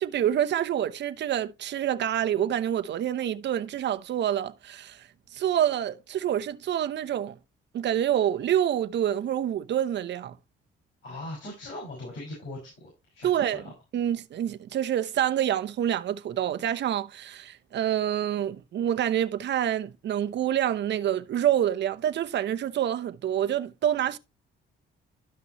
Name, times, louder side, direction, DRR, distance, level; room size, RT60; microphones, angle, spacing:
voice 1, 0.0-5.1 5.3-7.3 7.7-10.3 13.2-13.6 13.9-24.2, right 10 dB, 65° right, 0.8 m, -27 dB
voice 2, 11.0-13.7, left 1 dB, 75° left, 5.9 m, -40 dB
12.0 x 5.9 x 3.0 m
cardioid pair, 90°, 20 cm